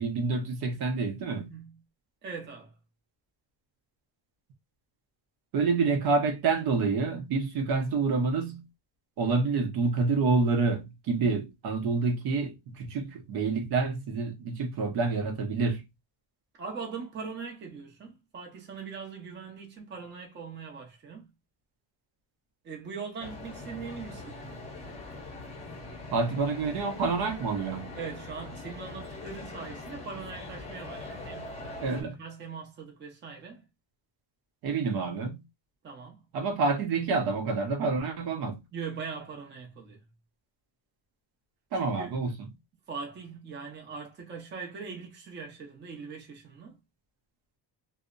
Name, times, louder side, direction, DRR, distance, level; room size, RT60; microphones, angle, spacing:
voice 1, 0.0-1.5 5.5-8.7 9.2-15.8 26.1-27.9 31.8-32.1 34.6-35.4 36.3-38.6 41.7-42.3, right 4 dB, 65° right, 0.7 m, -28 dB
voice 2, 1.4-1.7 2.2-2.7 16.6-21.3 22.6-24.4 27.9-31.5 32.0-33.6 35.8-36.2 38.7-40.0 41.8-42.2 42.9-46.8, right 5 dB, 25° right, 0.6 m, -41 dB
sound 1, 23.2-32.0, left 2 dB, 15° left, 0.7 m, -42 dB
2.7 x 2.0 x 2.4 m
cardioid pair, 170°, 41 cm